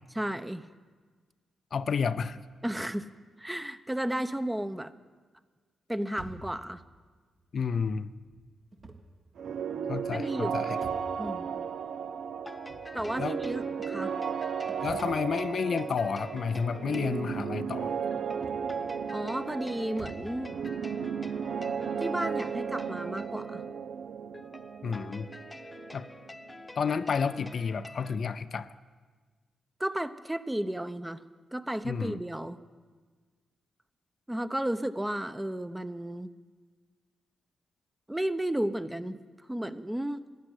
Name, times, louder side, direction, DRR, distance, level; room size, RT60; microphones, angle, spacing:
voice 1, 0.1-0.6 2.6-3.1 3.4-4.9 5.9-6.8 10.1-10.8 11.2-11.6 12.9-14.1 19.1-20.5 22.0-23.6 29.8-31.2 31.5-32.6 34.3-36.3 38.1-39.2 39.5-40.2, right 1 dB, 10° right, 12 dB, 0.8 m, -33 dB
voice 2, 1.7-2.4 7.5-8.1 9.9-10.7 13.2-13.4 14.8-17.9 24.8-25.3 25.9-26.1 26.8-28.7 31.8-32.2, left 6 dB, 60° left, 13 dB, 0.5 m, -30 dB
sound 1, 6.1-20.4, right 3 dB, 45° right, 1.7 m, -52 dB
sound 2, 9.4-27.0, right 7 dB, 70° right, 0.5 m, -35 dB
sound 3, 12.3-28.2, left 2 dB, 20° left, 1.0 m, -48 dB
13.5 x 9.3 x 9.8 m, 1.4 s
hypercardioid pair, 40°, 0 cm